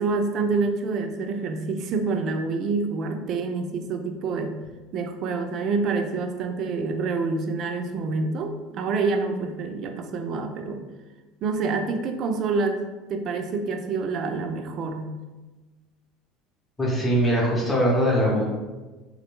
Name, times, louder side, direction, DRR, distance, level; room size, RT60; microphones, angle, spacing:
voice 1, 0.0-4.6 4.9-10.8 11.4-12.8 13.1-15.2, right 4 dB, 55° right, 6 dB, 0.4 m, -27 dB
voice 2, 16.8-18.4, equal, 15° left, -4 dB, 1.0 m, -21 dB
3.0 x 2.5 x 3.1 m, 1.2 s
hypercardioid pair, 90°, 0 cm